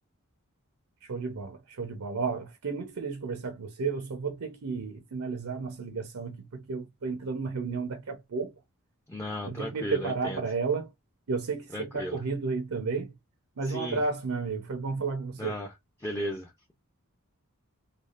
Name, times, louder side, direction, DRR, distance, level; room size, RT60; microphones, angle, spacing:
voice 1, 1.1-8.5 9.5-10.9 11.3-13.1 13.6-15.5, right 4 dB, 80° right, 0.6 m, -32 dB
voice 2, 9.1-10.4 11.7-12.2 13.6-14.0 15.4-15.7 16.0-16.7, left 1 dB, 10° left, 0.4 m, -35 dB
3.3 x 2.3 x 2.4 m
head